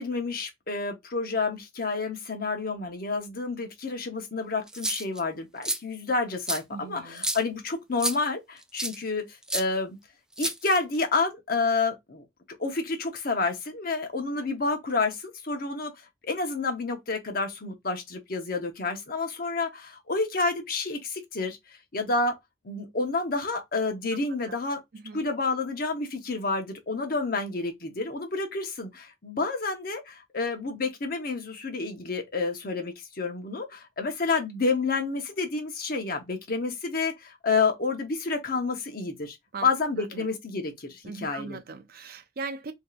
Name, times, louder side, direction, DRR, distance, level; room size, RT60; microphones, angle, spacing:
voice 1, 0.0-9.3 9.5-10.0 10.4-12.2 12.6-15.9 16.2-21.6 21.9-22.3 22.6-24.8 25.1-39.4 39.6-41.6, left 3 dB, 55° left, 0.9 m, -29 dB
sound 1, 4.7-5.2 5.6-5.8 6.5-6.6 7.2-7.4 8.0-8.2 8.8-9.0 9.5-9.6 10.4-11.0, right 1 dB, 5° right, 0.3 m, -29 dB
voice 2, 6.7-7.2 24.5-24.6 24.9-25.3 39.5-39.7 40.0-40.3 41.0-42.7, right 4 dB, 60° right, 0.5 m, -39 dB
3.5 x 2.8 x 2.4 m
head